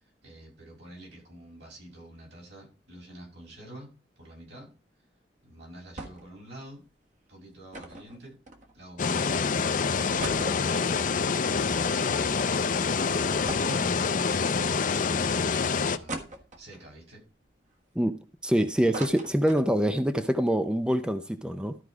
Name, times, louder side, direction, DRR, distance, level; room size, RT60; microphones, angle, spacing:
voice 1, 0.0-4.7 5.4-6.8 7.3-8.4 8.7-9.5 10.0-16.2 16.6-17.2, right 1 dB, 75° right, 6.3 m, -47 dB
sound 1, 6.0-6.4 6.7-6.8 7.7-9.0 9.5-9.6 9.9-12.4 12.8-12.9 13.5-14.6 15.1-15.2 16.1-16.9 17.5-18.5 18.7-20.1 20.4-20.5 20.7-21.0, right 2 dB, 45° right, 1.4 m, -41 dB
sound 2, 9.0-16.0, left 5 dB, 50° left, 0.5 m, -26 dB
voice 2, 18.0-21.8, equal, 5° right, 0.5 m, -25 dB
13.0 x 4.7 x 4.9 m
head